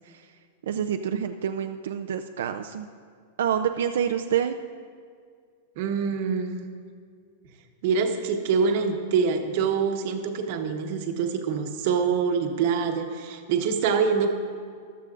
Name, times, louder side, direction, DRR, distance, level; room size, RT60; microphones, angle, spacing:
voice 1, 0.7-2.9 3.4-4.6, right 8 dB, 85° right, 7 dB, 0.4 m, -27 dB
voice 2, 5.8-6.7 7.8-14.3, right 6 dB, 45° right, 5 dB, 1.0 m, -25 dB
14.5 x 12.5 x 2.5 m, 2.1 s
supercardioid pair, 170°, 0 cm